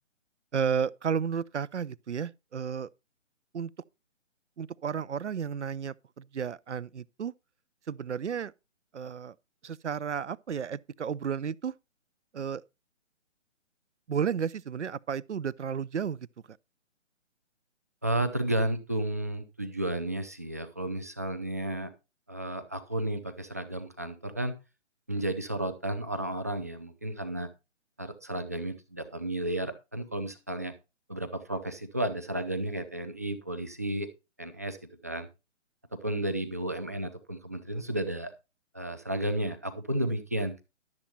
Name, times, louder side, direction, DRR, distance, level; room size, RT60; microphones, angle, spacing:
voice 1, 0.5-2.9 3.5-3.7 4.6-7.3 7.9-8.5 8.9-9.3 9.6-11.7 12.3-12.6 14.1-16.3, right 7 dB, 65° right, 0.6 m, -32 dB
voice 2, 18.0-21.9 22.3-24.5 25.1-27.5 28.0-30.7 31.1-34.1 34.4-34.8 35.0-35.3 35.9-38.3 38.7-40.6, right 1 dB, 15° right, 0.5 m, -32 dB
12.0 x 7.4 x 4.2 m
figure-of-eight pair, 145°, 38 cm